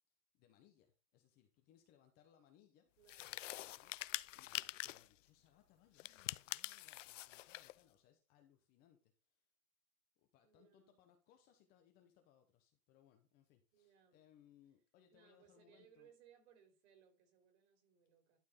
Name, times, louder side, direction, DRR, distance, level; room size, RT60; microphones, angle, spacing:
voice 1, 0.3-2.9 3.2-9.5 10.2-16.1, left 10 dB, 20° left, 0.8 m, -70 dB
voice 2, 3.0-3.4 10.4-11.0 13.7-14.2 15.1-18.4, right 8 dB, 45° right, 4.0 m, -68 dB
sound 1, 3.1-5.1 6.0-7.8, left 16 dB, 55° left, 0.5 m, -45 dB
12.0 x 4.5 x 5.3 m
supercardioid pair, 165°, 45 cm